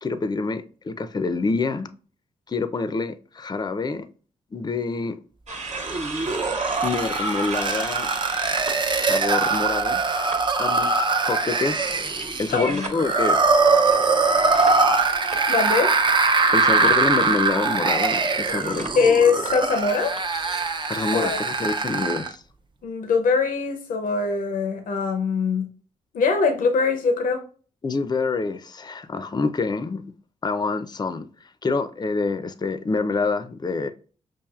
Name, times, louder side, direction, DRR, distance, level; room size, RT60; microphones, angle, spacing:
voice 1, 0.0-1.9 2.5-4.1 4.5-5.1 6.8-8.1 9.1-10.0 10.6-12.0 12.4-13.5 16.5-18.9 20.9-22.4 27.8-30.0 30.4-31.3 31.6-33.9, left 3 dB, 30° left, 0.5 m, -26 dB
sound 1, 5.5-10.4 10.8-16.5 16.7-17.1 18.0-20.7, right 3 dB, 55° right, 1.2 m, -38 dB
sound 2, 5.7-22.3, right 3 dB, 35° right, 0.5 m, -22 dB
voice 2, 12.5-12.9 15.5-15.9 18.9-20.1 21.1-21.4 22.8-25.7 26.1-27.4, left 5 dB, 80° left, 0.6 m, -22 dB
5.6 x 2.5 x 2.3 m
cardioid pair, 60°, 14 cm